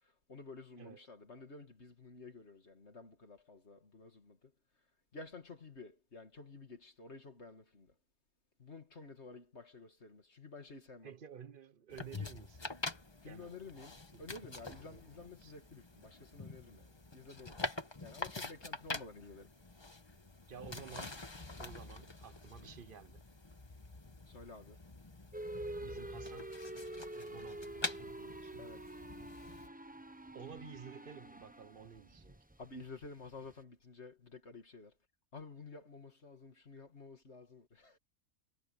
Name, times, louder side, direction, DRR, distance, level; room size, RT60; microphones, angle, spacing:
voice 1, 0.3-4.5 5.1-7.9 8.6-11.1 13.2-17.6 18.0-19.5 24.3-24.8 28.6-28.8 32.6-34.9 35.3-38.0, left 3 dB, 50° left, 2.7 m, -52 dB
voice 2, 11.0-12.8 13.2-13.8 14.1-14.2 14.6-15.5 20.5-21.3 21.6-23.2 25.8-26.6 27.1-28.7 30.3-32.5, right 7 dB, 45° right, 0.9 m, -53 dB
sound 1, 11.9-29.7, left 3 dB, 20° left, 1.2 m, -46 dB
sound 2, 25.3-33.6, right 1 dB, 10° right, 0.7 m, -47 dB
omnidirectional pair, 1.5 m